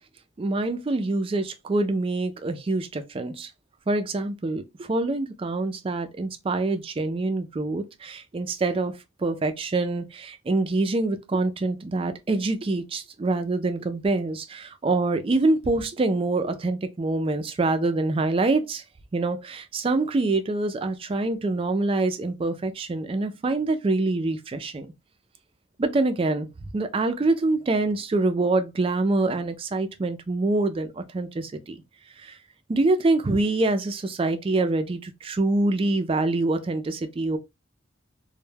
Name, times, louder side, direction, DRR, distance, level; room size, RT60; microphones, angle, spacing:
voice 1, 0.4-3.5 3.9-18.8 19.1-24.9 25.8-31.8 32.2-32.4 32.7-37.4, right 2 dB, 25° right, 0.3 m, -25 dB
2.1 x 2.1 x 3.1 m
head